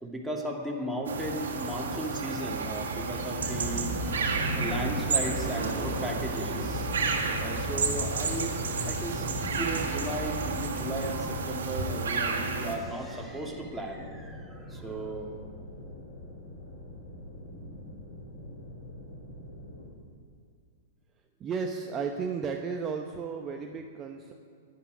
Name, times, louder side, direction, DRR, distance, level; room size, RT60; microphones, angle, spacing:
voice 1, 0.0-6.9 7.4-15.3, right 1 dB, ahead, -2 dB, 2.5 m, -36 dB
sound 1, 1.1-12.8, right 4 dB, 70° right, 1.8 m, -31 dB
sound 2, 2.8-19.9, left 1 dB, 80° left, 4.5 m, -45 dB
sound 3, 3.4-11.2, equal, 20° left, 3.9 m, -36 dB
voice 2, 21.4-24.3, right 5 dB, 25° right, 4 dB, 0.9 m, -34 dB
11.5 x 10.5 x 9.4 m, 2.2 s
figure-of-eight pair, 105°, 0 cm